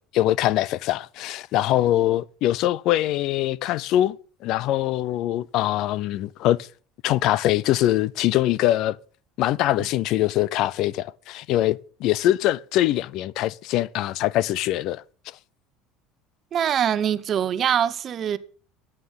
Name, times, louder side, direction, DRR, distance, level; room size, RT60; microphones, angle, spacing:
voice 1, 0.1-4.2 4.4-6.7 7.0-9.0 9.4-15.0, left 14 dB, 55° left, 0.5 m, -23 dB
voice 2, 16.5-18.4, right 9 dB, 35° right, 0.9 m, -23 dB
13.0 x 9.0 x 7.1 m
cardioid pair, 140°, 0 cm